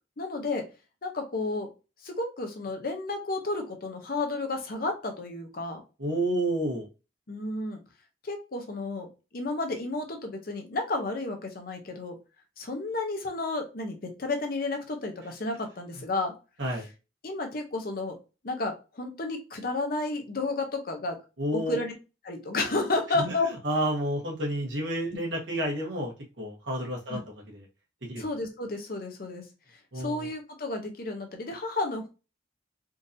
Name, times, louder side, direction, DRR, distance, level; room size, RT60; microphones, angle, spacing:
voice 1, 0.2-0.7 1.0-1.7 2.0-5.8 7.3-7.8 8.2-9.1 9.3-12.2 12.6-16.3 17.2-18.1 18.4-21.2 21.5-21.9 22.2-23.5 27.1-27.2 28.2-29.5 30.0-32.1, left 2 dB, 50° left, 4 dB, 0.7 m, -32 dB
voice 2, 6.0-6.9 16.6-16.9 21.4-21.8 23.2-23.3 23.6-26.1 26.4-27.2 27.5-27.6 28.1-28.2 29.9-30.3, right 1 dB, 80° right, -1 dB, 1.2 m, -30 dB
3.7 x 2.6 x 2.6 m, 0.30 s
head